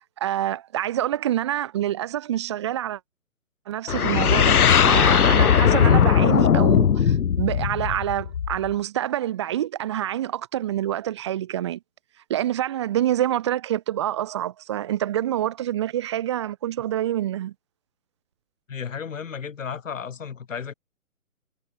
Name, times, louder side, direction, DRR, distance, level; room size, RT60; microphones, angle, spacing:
voice 1, 0.2-3.0 3.7-11.8 12.3-17.5, right 12 dB, 20° right, 1.0 m, -26 dB
sound 1, 3.9-8.7, left 8 dB, 80° left, 1.0 m, -18 dB
voice 2, 18.7-20.7, left 6 dB, 60° left, 4.9 m, -33 dB
hypercardioid pair, 155°, 44 cm